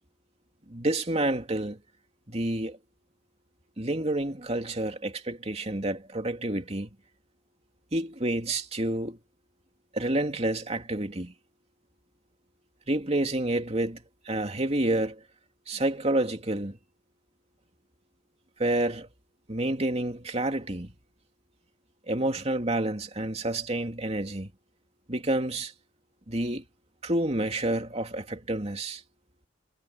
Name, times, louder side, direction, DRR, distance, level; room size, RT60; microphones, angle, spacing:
voice 1, 0.7-1.8 2.3-2.8 3.8-6.9 7.9-9.2 9.9-11.3 12.9-15.2 15.7-16.8 18.6-19.1 19.5-20.9 22.1-24.5 25.1-25.7 26.3-26.6 27.0-29.0, right 1 dB, 35° right, 2.7 m, -29 dB
head